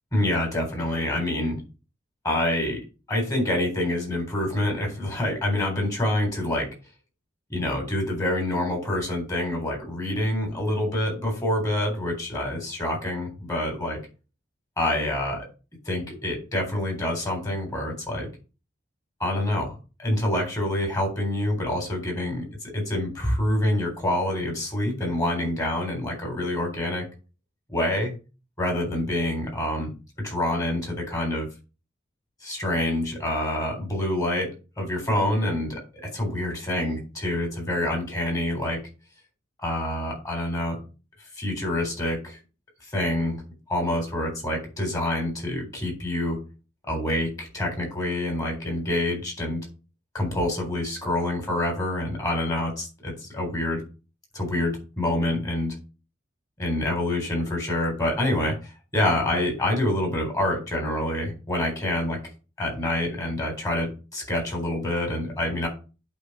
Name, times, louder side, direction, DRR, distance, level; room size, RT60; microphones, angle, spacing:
voice 1, 0.1-1.6 2.2-2.8 3.1-6.7 7.5-14.0 14.8-15.5 15.9-18.3 19.2-22.5 22.7-27.1 27.7-28.1 28.6-29.9 30.2-31.5 32.4-34.5 34.8-35.8 36.1-38.8 39.6-40.8 41.4-42.4 42.9-43.4 43.7-46.4 46.9-49.7 50.1-53.8 54.3-55.8 56.6-62.2 62.6-65.7, left 1 dB, 20° left, 1 dB, 3.7 m, -26 dB
8.5 x 4.0 x 5.9 m, 0.32 s
head